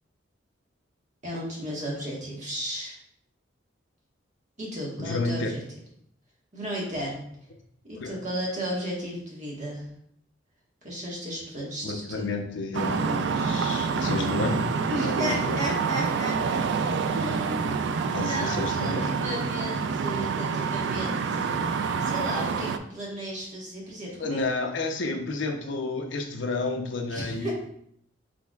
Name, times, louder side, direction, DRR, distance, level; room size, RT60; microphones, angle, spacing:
voice 1, 1.2-3.0 4.6-5.6 6.5-7.2 7.8-9.9 10.8-12.3 14.9-16.6 17.1-17.8 18.2-24.4 27.1-27.5, equal, 40° right, -4 dB, 1.4 m, -34 dB
voice 2, 5.0-5.5 8.0-8.2 11.8-14.7 15.0-15.6 18.1-19.1 24.2-27.5, left 3 dB, 65° left, 3 dB, 0.7 m, -30 dB
sound 1, 12.7-22.8, right 5 dB, 65° right, 0.3 m, -27 dB
6.2 x 3.4 x 2.3 m, 0.69 s
head